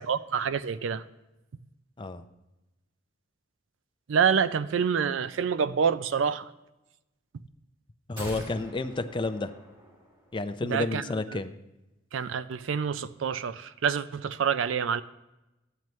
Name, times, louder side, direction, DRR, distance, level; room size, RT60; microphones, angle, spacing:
voice 1, 0.1-1.0 4.1-6.5 10.6-11.0 12.1-15.0, right 7 dB, 70° right, 14 dB, 0.4 m, -27 dB
voice 2, 8.1-9.5 10.3-11.5, left 2 dB, 25° left, 9 dB, 0.5 m, -31 dB
sound 1, 8.2-10.5 10.8-10.9, right 1 dB, 25° right, 3.2 m, -45 dB
13.0 x 9.0 x 3.1 m, 0.98 s
head